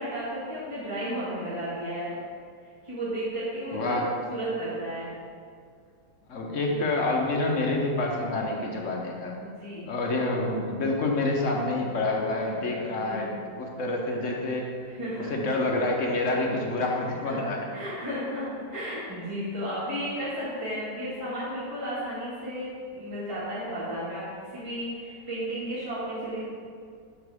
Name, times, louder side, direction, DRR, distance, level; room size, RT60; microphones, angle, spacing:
voice 1, 0.0-2.2 2.8-4.0 4.3-5.1 9.6-9.8 12.8-13.3 14.8-15.3 17.2-17.4 17.7-26.4, equal, 15° right, -10 dB, 1.8 m, -33 dB
voice 2, 3.7-4.1 6.3-9.4 9.9-14.7 15.3-17.6, left 2 dB, 55° left, -1 dB, 0.9 m, -27 dB
11.5 x 4.3 x 3.5 m, 2.2 s
omnidirectional pair, 2.1 m